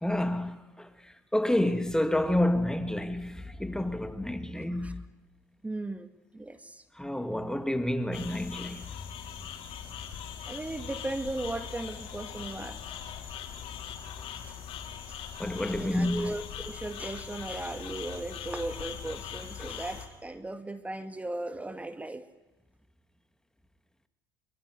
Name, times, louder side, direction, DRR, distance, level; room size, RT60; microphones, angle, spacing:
voice 1, 0.0-5.0 7.0-8.9 15.4-16.3, left 1 dB, 5° left, 2.0 m, -29 dB
voice 2, 4.5-4.9 5.6-6.1 6.3-6.8 10.5-13.0 14.5-14.6 15.1-15.2 15.7-22.3, right 2 dB, 10° right, 1.8 m, -37 dB
sound 1, 8.1-20.1, left 8 dB, 55° left, 5.3 m, -41 dB
24.5 x 24.5 x 9.6 m
hypercardioid pair, 65°, 12 cm